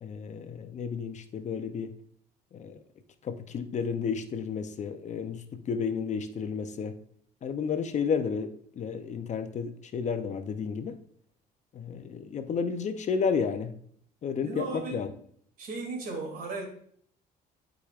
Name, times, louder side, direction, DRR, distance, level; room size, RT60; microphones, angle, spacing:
voice 1, 0.0-1.9 2.5-2.8 3.2-7.0 7.4-11.0 11.7-13.7 14.2-14.6 14.9-15.1, left 6 dB, 45° left, 8 dB, 0.7 m, -32 dB
voice 2, 14.4-15.0 15.6-16.7, right 3 dB, 60° right, 2 dB, 2.5 m, -36 dB
11.5 x 5.0 x 2.5 m, 0.62 s
cardioid pair, 110°, 17 cm